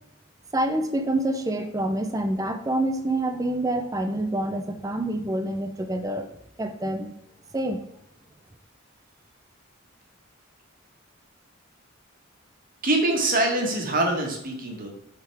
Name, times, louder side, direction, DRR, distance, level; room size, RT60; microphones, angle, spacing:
voice 1, 0.5-6.3 6.6-7.1 7.5-7.8, right 1 dB, 15° right, 7 dB, 0.5 m, -27 dB
voice 2, 12.8-14.9, right 2 dB, 40° right, 1 dB, 1.2 m, -24 dB
7.5 x 3.7 x 3.4 m, 0.78 s
head